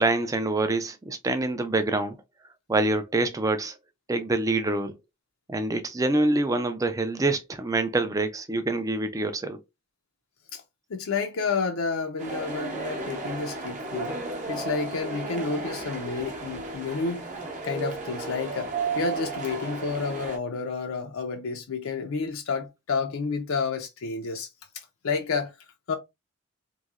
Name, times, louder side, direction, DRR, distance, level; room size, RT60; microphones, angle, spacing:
voice 1, 0.0-2.2 2.7-3.8 4.1-5.0 5.5-9.6, right 2 dB, 15° right, 0.3 m, -26 dB
voice 2, 10.9-14.2 14.5-17.3 17.6-24.5 25.0-25.5 25.9-26.0, left 4 dB, 75° left, 0.5 m, -30 dB
sound 1, 12.2-20.4, right 3 dB, 35° right, 0.7 m, -34 dB
3.0 x 2.6 x 2.4 m
head